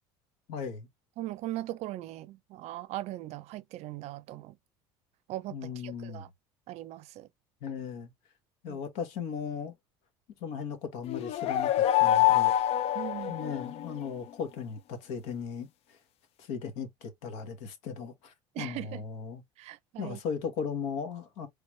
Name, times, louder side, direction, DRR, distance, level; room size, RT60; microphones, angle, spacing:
voice 1, 0.5-0.9 5.5-6.3 7.6-8.1 8.6-9.7 10.4-12.5 13.3-16.0 16.4-19.4 20.0-21.5, left 6 dB, 70° left, 1.3 m, -37 dB
voice 2, 1.2-4.6 5.3-6.3 6.7-7.3 8.7-8.8 12.9-13.3 18.5-19.0 19.6-20.2, right 15 dB, 55° right, 0.5 m, -39 dB
sound 1, 11.1-14.0, left 12 dB, 50° left, 0.5 m, -26 dB
3.4 x 2.9 x 3.3 m
hypercardioid pair, 80°, 13 cm